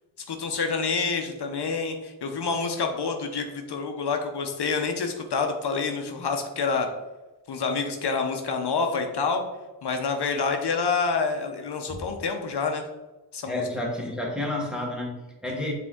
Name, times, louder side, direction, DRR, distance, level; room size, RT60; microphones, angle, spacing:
voice 1, 0.3-6.9 7.5-9.4 9.8-12.8 13.3-13.6, left 4 dB, 65° left, 4 dB, 0.7 m, -27 dB
voice 2, 13.5-15.7, left 1 dB, ahead, -2 dB, 1.1 m, -30 dB
7.5 x 3.6 x 3.6 m, 1.1 s
wide cardioid pair, 180°, 43 cm